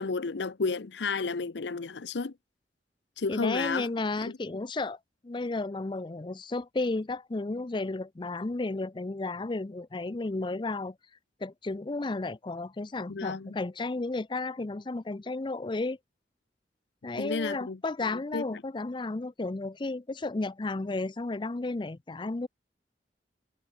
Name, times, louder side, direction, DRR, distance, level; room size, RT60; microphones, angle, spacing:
voice 1, 0.0-2.3 3.2-3.9 13.1-13.5 17.2-17.8 18.3-18.6, left 4 dB, 80° left, 0.7 m, -32 dB
voice 2, 3.3-5.0 5.2-11.0 11.4-16.0 17.0-22.5, left 2 dB, 25° left, 0.5 m, -33 dB
head